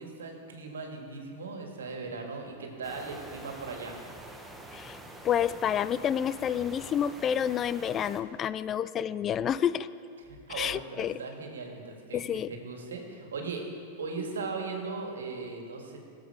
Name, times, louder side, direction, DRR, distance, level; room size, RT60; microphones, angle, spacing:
voice 1, 0.0-4.0 10.3-13.6 14.0-16.0, right 4 dB, 85° right, 2 dB, 2.0 m, -38 dB
sound 1, 2.8-8.2, right 1 dB, 5° right, 1.2 m, -46 dB
voice 2, 5.2-9.9 10.5-11.2 12.1-12.5, left 9 dB, 30° left, 16 dB, 0.3 m, -29 dB
18.0 x 7.6 x 4.8 m, 2.5 s
hypercardioid pair, 110°, 0 cm